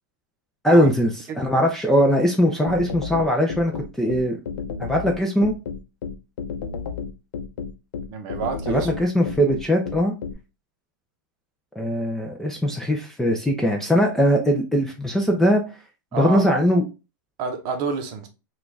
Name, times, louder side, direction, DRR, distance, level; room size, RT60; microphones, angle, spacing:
voice 1, 0.6-1.1 1.4-3.7 4.0-4.4 4.8-5.5 8.7-10.1 11.8-15.6 16.1-16.8, equal, 5° left, 0.4 m, -20 dB
sound 1, 2.7-10.3, left 6 dB, 85° left, 0.6 m, -31 dB
voice 2, 8.1-8.9 16.1-16.5 17.4-18.3, right 5 dB, 40° right, 0.8 m, -28 dB
3.8 x 2.3 x 3.2 m
supercardioid pair, 145°, 10 cm